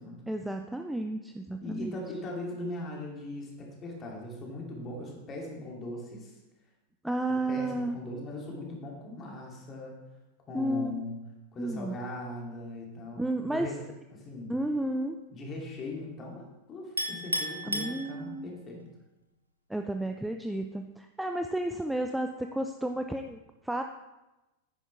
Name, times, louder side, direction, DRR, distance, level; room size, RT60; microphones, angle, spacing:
voice 1, 0.3-2.0 7.0-8.0 10.5-11.0 11.6-12.0 13.2-13.7 14.5-15.2 17.7-18.5 19.7-23.8, right 1 dB, 5° right, 5 dB, 0.4 m, -32 dB
voice 2, 1.6-6.4 7.3-10.0 10.5-11.2 11.5-14.5 15.3-18.8, left 1 dB, 25° left, -2 dB, 2.7 m, -40 dB
Chink clink, 17.0-18.6, equal, 90° right, 0.8 m, -33 dB
9.9 x 9.8 x 3.4 m, 1.0 s
figure-of-eight pair, 90°, 0 cm